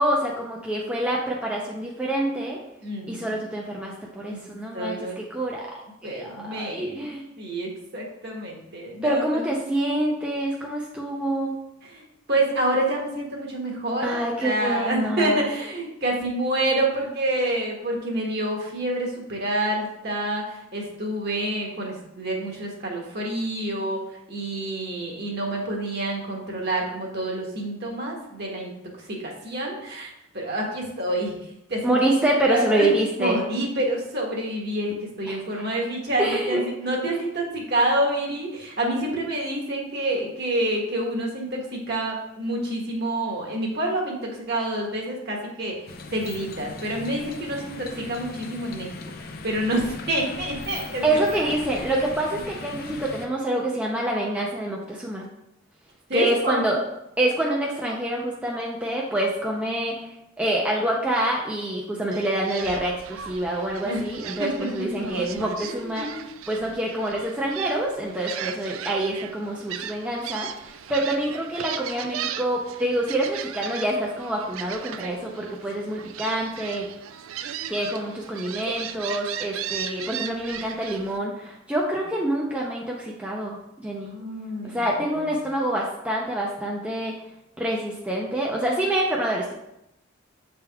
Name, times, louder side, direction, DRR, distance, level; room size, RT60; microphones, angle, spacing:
voice 1, 0.0-2.6 3.1-5.7 6.0-7.2 9.0-11.5 14.0-15.4 31.8-33.4 35.3-35.4 36.2-36.6 37.1-37.2 51.0-55.2 56.1-56.8 57.2-60.1 60.4-66.2 66.5-76.9 77.7-84.1 84.6-87.1 87.6-89.5, right 1 dB, 5° right, -3 dB, 0.5 m, -26 dB
voice 2, 2.8-3.4 4.3-4.4 4.7-5.2 6.0-7.0 7.4-9.4 11.9-24.0 24.3-30.1 30.3-31.3 31.7-31.9 32.5-32.9 33.2-45.8 46.1-48.9 49.4-51.0 51.3-51.5 56.1-56.6 63.8-64.0 64.4-64.7 65.6-66.2 84.0-85.5, right 1 dB, 50° right, -1 dB, 1.3 m, -28 dB
sound 1, 45.9-53.3, left 3 dB, 45° left, 0.5 m, -39 dB
Gull seagull, 62.1-81.2, right 9 dB, 75° right, 0.4 m, -37 dB
7.7 x 3.5 x 3.4 m, 0.84 s
head